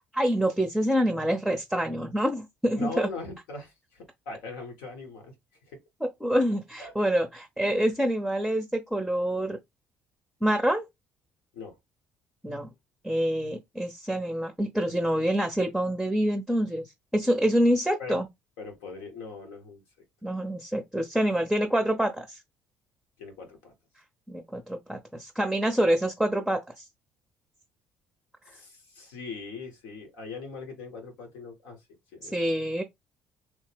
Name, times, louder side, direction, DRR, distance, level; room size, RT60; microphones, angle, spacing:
voice 1, 0.1-3.1 6.0-9.6 10.4-10.9 12.4-12.7 13.0-16.9 17.1-18.3 20.2-22.4 24.3-26.8 32.2-32.8, equal, 5° right, 0.6 m, -26 dB
voice 2, 2.7-5.3 5.7-5.8 6.8-6.9 7.6-7.9 11.5-11.8 18.0-18.2 18.6-19.8 23.2-23.7 28.5-31.8 32.1-32.5, left 3 dB, 85° left, 1.2 m, -40 dB
3.2 x 2.1 x 3.3 m
supercardioid pair, 65°, 5 cm